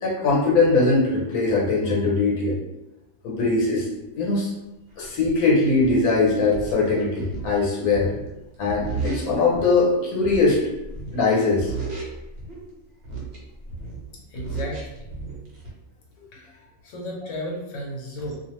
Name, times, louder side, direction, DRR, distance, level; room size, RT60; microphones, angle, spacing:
voice 1, 0.0-2.6 3.2-3.9 4.2-4.5 5.0-8.1 8.6-10.6 11.1-11.7, left 3 dB, 85° left, -3 dB, 1.3 m, -21 dB
sound 1, 5.1-5.2 5.8-9.9 10.2-11.3 11.6-12.6 13.0-15.7, right 4 dB, 55° right, 0.9 m, -34 dB
voice 2, 14.1-15.1 16.3-18.3, equal, 65° left, -3 dB, 1.1 m, -34 dB
2.5 x 2.4 x 3.0 m, 0.94 s
omnidirectional pair, 1.5 m